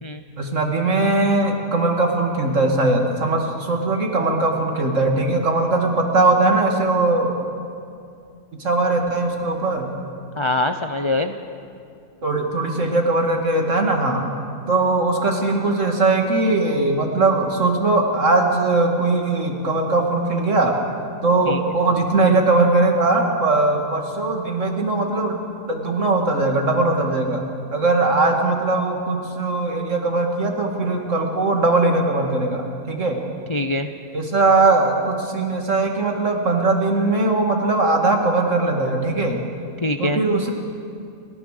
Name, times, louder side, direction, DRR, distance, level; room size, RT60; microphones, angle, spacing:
voice 1, 0.4-7.3 8.6-9.9 12.2-14.2 14.7-20.7 21.2-25.3 25.7-27.4 27.7-33.2 34.1-39.4 40.0-40.5, right 2 dB, 60° right, 2 dB, 2.5 m, -20 dB
voice 2, 10.4-11.3 21.5-21.7 33.5-33.9 39.8-40.2, left 2 dB, 35° left, 7 dB, 0.5 m, -23 dB
30.0 x 13.5 x 6.6 m, 2.5 s
omnidirectional pair, 1.5 m